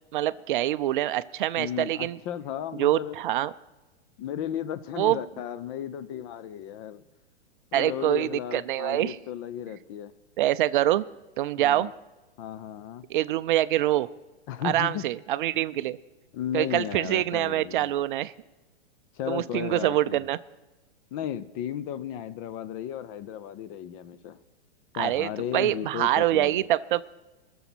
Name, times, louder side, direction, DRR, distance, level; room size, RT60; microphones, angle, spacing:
voice 1, 0.1-2.2 2.8-3.5 5.0-5.2 7.7-9.2 10.4-11.0 11.4-11.9 13.1-14.1 14.6-16.0 16.5-18.3 19.3-20.4 24.9-27.0, right 13 dB, 50° right, 15 dB, 0.5 m, -25 dB
voice 2, 1.6-3.2 4.2-7.0 7.7-10.1 11.6-11.9 12.4-13.1 14.5-15.0 16.3-17.9 19.1-20.2 21.1-24.4 24.9-26.6, left 10 dB, 30° left, 13 dB, 0.5 m, -34 dB
20.0 x 7.1 x 6.1 m, 1.1 s
hypercardioid pair, 130°, 34 cm